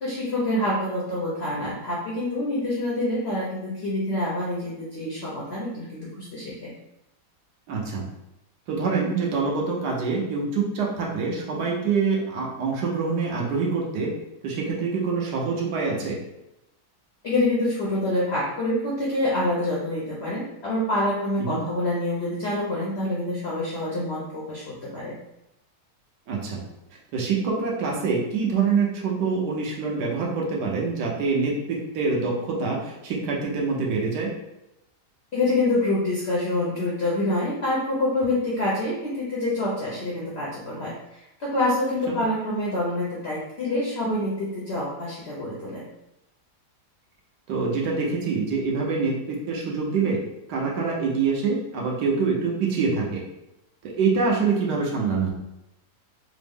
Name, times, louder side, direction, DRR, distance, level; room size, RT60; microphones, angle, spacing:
voice 1, 0.0-6.7 17.2-25.2 35.3-45.8, left 1 dB, 65° left, -5 dB, 0.6 m, -26 dB
voice 2, 7.7-8.0 8.7-14.1 14.4-16.2 21.4-21.6 26.3-26.6 27.1-34.3 42.1-42.2 47.5-50.2 50.5-53.2 53.8-55.3, right 4 dB, 75° right, -2 dB, 1.3 m, -25 dB
3.5 x 2.0 x 3.4 m, 0.88 s
omnidirectional pair, 1.8 m